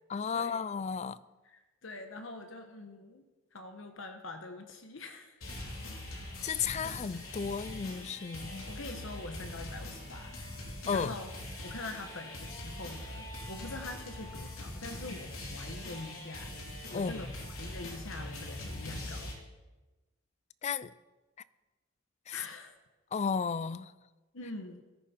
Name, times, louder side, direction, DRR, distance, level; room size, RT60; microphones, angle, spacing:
voice 1, 0.1-1.2 6.4-8.7 10.9-11.1 15.1-15.2 16.9-17.2 20.6-20.9 22.3-22.4 23.1-23.9, left 6 dB, 35° left, 17 dB, 0.3 m, -33 dB
voice 2, 1.4-3.2 3.5-5.4 8.2-8.3 8.7-10.3 10.9-11.3 11.6-16.5 16.9-17.3 17.6-19.3 22.3-22.8 24.3-24.8, left 2 dB, 65° left, 5 dB, 1.2 m, -44 dB
sound 1, 5.4-19.3, left 1 dB, 85° left, 3.8 m, -42 dB
17.0 x 13.5 x 4.4 m, 1.2 s
head